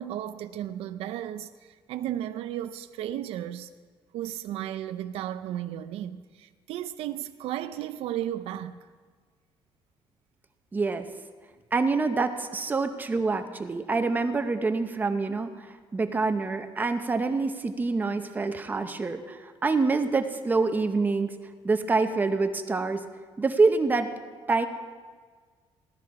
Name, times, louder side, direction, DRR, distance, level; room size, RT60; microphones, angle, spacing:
voice 1, 0.0-3.7 4.1-8.8, right 12 dB, 75° right, 0.6 m, -34 dB
voice 2, 10.7-11.1 11.7-15.7 15.9-21.3 21.6-23.0 23.4-24.1 24.5-24.7, right 3 dB, 15° right, 0.6 m, -26 dB
17.0 x 12.5 x 4.7 m
cardioid pair, 170°, 10 cm